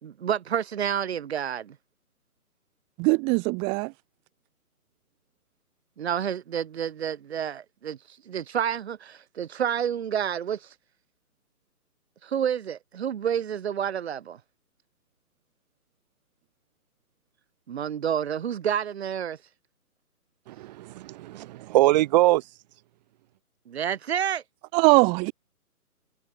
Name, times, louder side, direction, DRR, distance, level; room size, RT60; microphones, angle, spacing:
voice 1, 0.0-1.7 6.0-8.0 8.3-10.7 12.2-14.4 17.7-19.4 23.7-24.4, right 9 dB, 45° right, 4.9 m, -29 dB
voice 2, 3.0-3.9 24.7-25.3, right 32 dB, 10° right, 1.2 m, -21 dB
voice 3, 20.5-22.5, right 16 dB, 30° right, 7.3 m, -23 dB
hypercardioid pair, 155°, 45 cm